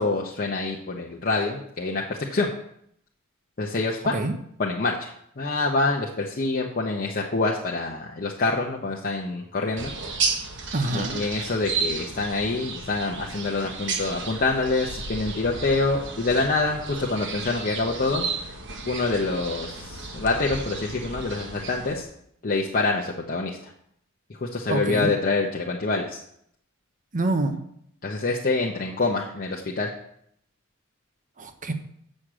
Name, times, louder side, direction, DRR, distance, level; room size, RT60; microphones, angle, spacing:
voice 1, 0.0-2.0 2.3-2.5 3.6-4.1 4.6-9.9 10.9-18.2 18.9-22.0 22.4-23.6 24.4-26.2 28.0-29.9, left 3 dB, 40° left, -1 dB, 0.9 m, -26 dB
sound 1, 9.8-22.0, right 4 dB, 60° right, 1.2 m, -33 dB
voice 2, 10.7-11.2 24.7-25.1 27.1-27.6 31.4-31.7, right 2 dB, 40° right, 8 dB, 0.9 m, -26 dB
6.6 x 6.4 x 7.5 m, 0.71 s
head